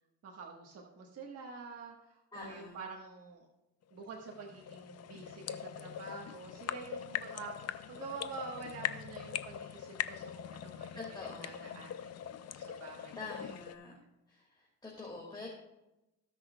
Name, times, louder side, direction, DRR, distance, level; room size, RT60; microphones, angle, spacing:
voice 1, 0.2-3.5 3.9-11.0 11.4-13.1 13.4-13.6, right 4 dB, 55° right, 0 dB, 1.4 m, -47 dB
voice 2, 2.3-2.8 10.9-11.8 13.2-13.9 14.3-15.5, left 3 dB, 15° left, -3 dB, 2.1 m, -46 dB
sound 1, 3.9-13.8, left 10 dB, 55° left, 0.6 m, -42 dB
18.0 x 6.1 x 2.3 m, 0.94 s
cardioid pair, 90°, 30 cm